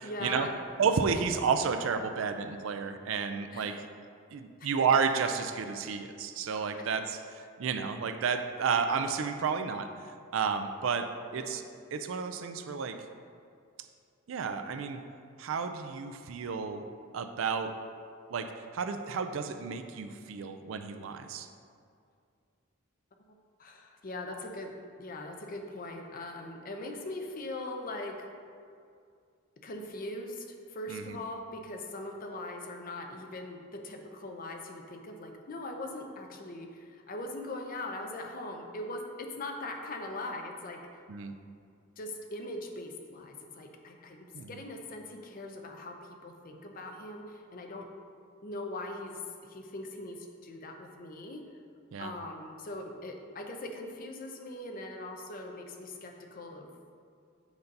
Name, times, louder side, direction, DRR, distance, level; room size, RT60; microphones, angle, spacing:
voice 1, 0.0-0.5 3.5-3.8 11.3-11.6 23.6-28.3 29.6-41.0 42.0-47.9 48.4-51.5 52.0-56.7, left 2 dB, 45° left, 3 dB, 0.6 m, -41 dB
voice 2, 0.8-3.8 4.3-9.9 10.3-11.6 11.9-13.0 14.3-15.0 15.4-16.9 17.1-17.7 18.3-21.5 30.9-31.2 41.1-41.3 44.3-44.5 51.9-52.1, right 5 dB, 70° right, 8 dB, 0.4 m, -31 dB
7.9 x 2.7 x 5.2 m, 2.3 s
head